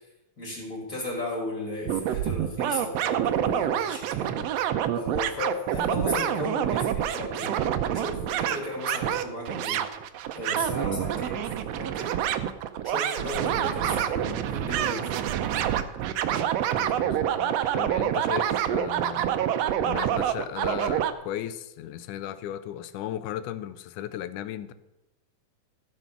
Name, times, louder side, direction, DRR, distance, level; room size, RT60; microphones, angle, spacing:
voice 1, 0.4-4.5 4.9-7.6 7.9-9.8 10.3-12.2 12.8-15.2, left 1 dB, 25° left, 3.3 m, -35 dB
sound 1, 1.9-21.1, right 10 dB, 75° right, 1.6 m, -27 dB
voice 2, 16.8-19.4 19.8-24.7, left 11 dB, 85° left, 2.1 m, -36 dB
15.0 x 6.8 x 5.9 m
omnidirectional pair, 3.5 m